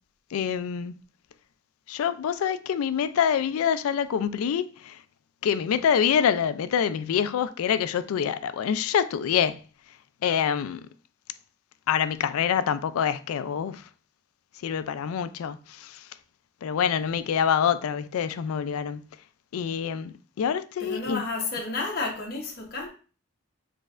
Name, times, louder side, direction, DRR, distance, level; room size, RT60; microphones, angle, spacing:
voice 1, 0.3-0.9 1.9-5.0 5.4-9.6 10.2-10.9 11.9-13.9 14.6-16.1 16.6-19.0 19.5-21.2, left 8 dB, 85° left, 0.3 m, -26 dB
voice 2, 20.8-22.9, left 3 dB, 45° left, 1.0 m, -31 dB
4.2 x 3.2 x 2.4 m
head